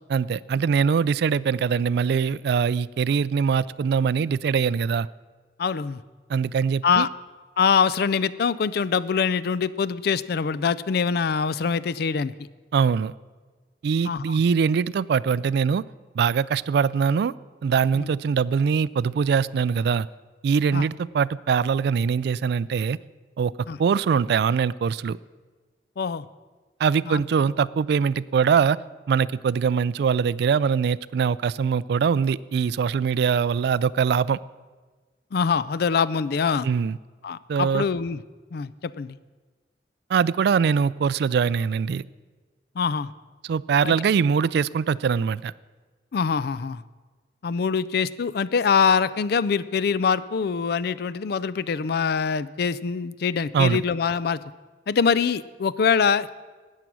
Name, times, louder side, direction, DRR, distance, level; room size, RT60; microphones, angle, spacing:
voice 1, 0.1-5.1 6.3-7.1 12.7-13.1 13.8-15.8 16.2-17.3 17.6-20.1 20.4-23.0 23.4-23.5 23.8-25.2 26.8-28.8 29.1-34.4 36.6-37.0 37.5-37.8 40.1-42.0 43.4-45.5 53.5-53.8, right 6 dB, 65° right, 20 dB, 0.3 m, -22 dB
voice 2, 5.6-6.0 6.8-7.1 7.6-12.3 14.0-14.4 17.9-18.1 20.7-20.9 23.7-23.8 26.0-26.3 27.1-27.2 35.3-36.7 37.2-38.2 38.5-39.2 42.8-43.1 43.8-43.9 46.1-46.8 47.4-54.4 54.9-56.3, left 6 dB, 60° left, 17 dB, 0.4 m, -24 dB
13.0 x 9.2 x 6.1 m, 1.3 s
head